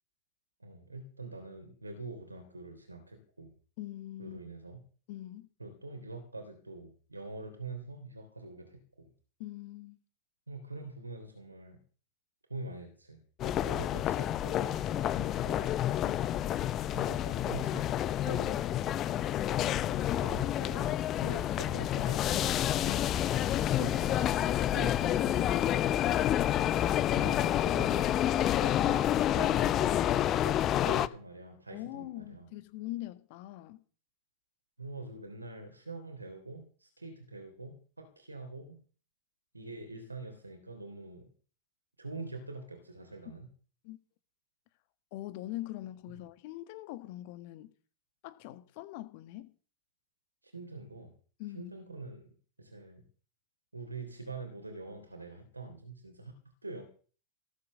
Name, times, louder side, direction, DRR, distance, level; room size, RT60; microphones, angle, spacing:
voice 1, 0.6-3.5 4.2-4.8 5.6-9.1 10.5-11.8 12.5-15.8 16.9-17.9 18.2-19.0 20.2-22.7 23.7-24.5 24.7-25.3 27.1-28.1 28.5-30.0 30.4-32.5 34.8-38.8 39.5-41.3 42.0-43.5 46.1-46.2 50.4-51.1 51.5-52.3 52.6-53.0 53.7-56.3 56.6-56.8, right 3 dB, 85° right, 3.3 m, -44 dB
voice 2, 3.8-4.4 5.1-5.5 9.4-10.0 15.1-15.4 16.0-16.3 19.6-20.1 22.8-23.2 24.7-26.3 31.7-33.8 43.8-44.0 45.1-47.7 48.2-49.5 51.4-51.7, left 16 dB, 50° left, 1.6 m, -43 dB
sound 1, 13.4-31.1, left 12 dB, 30° left, 0.8 m, -29 dB
18.5 x 8.5 x 6.5 m
figure-of-eight pair, 90°, 0 cm